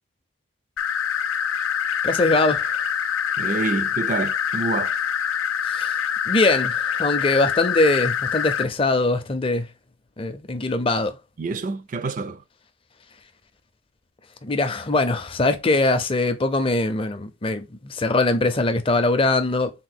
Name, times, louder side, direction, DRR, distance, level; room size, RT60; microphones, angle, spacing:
sound 1, 0.8-8.6, left 8 dB, 80° left, 0.6 m, -25 dB
voice 1, 2.0-2.7 5.6-6.0 6.3-9.7 10.2-11.2 14.4-19.7, left 2 dB, 25° left, 0.5 m, -22 dB
voice 2, 3.4-5.0 11.4-12.4, right 3 dB, 40° right, 0.4 m, -27 dB
3.7 x 2.5 x 4.1 m
head